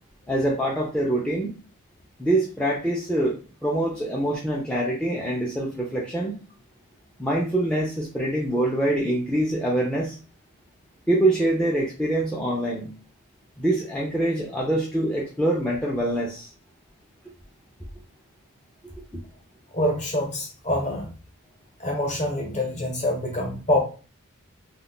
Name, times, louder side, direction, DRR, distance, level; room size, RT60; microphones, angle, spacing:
voice 1, 0.3-1.6 2.2-3.4 3.6-6.4 7.2-10.2 11.1-12.9 13.6-16.5, right 1 dB, 5° left, -5 dB, 0.4 m, -24 dB
voice 2, 19.7-21.1 21.8-23.8, left 1 dB, 35° left, 1 dB, 0.9 m, -25 dB
2.3 x 2.1 x 3.6 m, 0.35 s
head